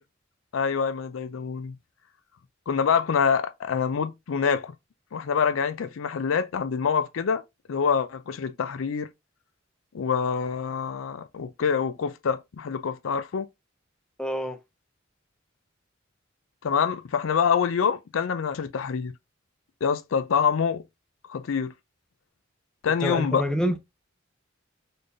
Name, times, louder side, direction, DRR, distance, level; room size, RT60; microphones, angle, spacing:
voice 1, 0.5-1.7 2.7-4.7 5.1-7.4 7.7-9.1 9.9-13.5 16.6-19.1 19.8-20.8 21.3-21.7 22.8-23.4, left 6 dB, 85° left, 0.4 m, -26 dB
voice 2, 14.2-14.6 23.0-23.8, equal, 5° left, 0.5 m, -27 dB
4.1 x 3.3 x 2.5 m
head